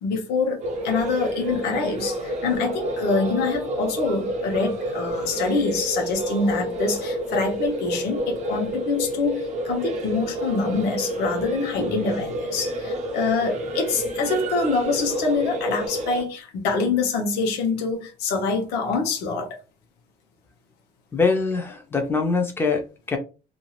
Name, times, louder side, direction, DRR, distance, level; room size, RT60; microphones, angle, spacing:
voice 1, 0.0-19.5, left 4 dB, 70° left, 0.9 m, -25 dB
sound 1, 0.6-16.2, right 1 dB, 45° right, 0.6 m, -29 dB
voice 2, 21.1-23.2, left 4 dB, 15° left, 0.5 m, -23 dB
2.6 x 2.4 x 3.0 m
cardioid pair, 165°, 17 cm